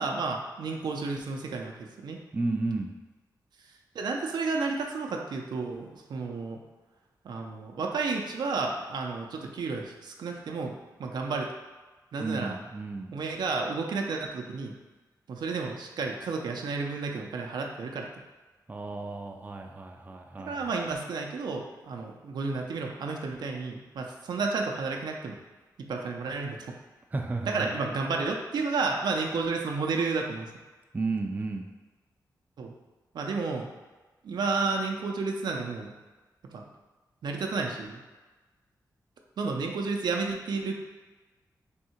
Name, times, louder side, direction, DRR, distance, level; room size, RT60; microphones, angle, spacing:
voice 1, 0.0-2.2 3.9-6.6 7.2-10.7 11.0-11.5 12.1-12.6 13.1-14.7 15.3-18.1 20.5-25.4 25.8-26.7 27.5-30.5 32.6-32.7 33.1-33.7 34.2-35.9 36.5-36.6 37.2-38.0 39.4-40.7, right 4 dB, 85° right, 1 dB, 0.5 m, -31 dB
voice 2, 2.3-2.9 12.2-13.1 18.7-20.7 27.1-27.7 30.9-31.7, right 3 dB, 25° right, 2 dB, 0.4 m, -33 dB
3.6 x 2.7 x 4.3 m, 1.2 s
wide cardioid pair, 95°, 7 cm